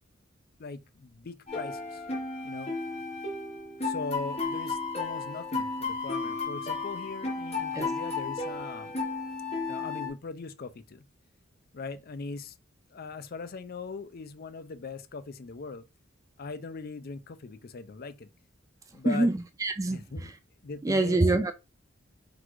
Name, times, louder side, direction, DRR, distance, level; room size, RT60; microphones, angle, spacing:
voice 1, 0.6-2.0 2.4-2.7 3.8-8.9 9.7-11.0 11.7-12.5 12.9-15.8 16.4-18.3 18.9-19.3 19.9-20.3 20.6-21.2, left 4 dB, 50° left, 0.5 m, -40 dB
sound 1, 1.5-10.1, left 3 dB, 30° left, 1.1 m, -33 dB
voice 2, 19.6-20.0 20.8-21.5, right 2 dB, 15° right, 0.3 m, -24 dB
3.9 x 2.5 x 4.5 m
head